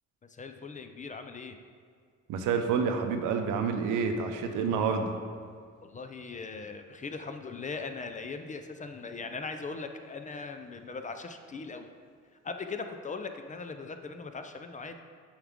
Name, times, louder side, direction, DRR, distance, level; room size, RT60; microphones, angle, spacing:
voice 1, 0.2-1.6 5.8-11.9 12.4-15.0, left 4 dB, 25° left, 7 dB, 0.4 m, -39 dB
voice 2, 2.3-5.1, right 6 dB, 90° right, 6 dB, 0.7 m, -28 dB
7.1 x 4.7 x 3.5 m, 2.1 s
cardioid pair, 90°, 30 cm